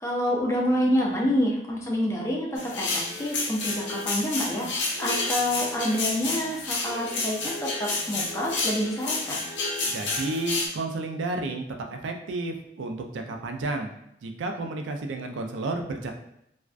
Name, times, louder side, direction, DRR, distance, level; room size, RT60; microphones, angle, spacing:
voice 1, 0.0-9.4, equal, 15° left, -2 dB, 0.4 m, -27 dB
sound 1, 2.6-10.7, left 3 dB, 75° left, 0.5 m, -30 dB
voice 2, 9.9-13.9 14.2-16.1, right 2 dB, 90° right, 4 dB, 0.3 m, -31 dB
2.4 x 2.1 x 2.3 m, 0.78 s
head